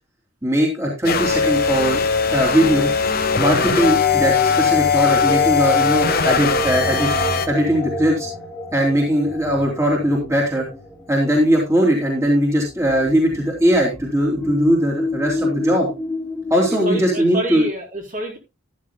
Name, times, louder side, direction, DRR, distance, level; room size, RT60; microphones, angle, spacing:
voice 1, 0.4-2.0 2.3-2.9 3.4-7.1 7.5-8.3 8.7-10.7 11.1-15.9 16.5-17.7, equal, 15° right, -2 dB, 3.0 m, -19 dB
sound 1, 1.0-7.5, left 6 dB, 45° left, 1.1 m, -19 dB
sound 2, 2.5-17.1, left 2 dB, 5° left, 2.5 m, -30 dB
voice 2, 16.8-18.4, right 1 dB, 40° right, -1 dB, 4.0 m, -28 dB
13.5 x 12.0 x 2.3 m, 0.25 s
head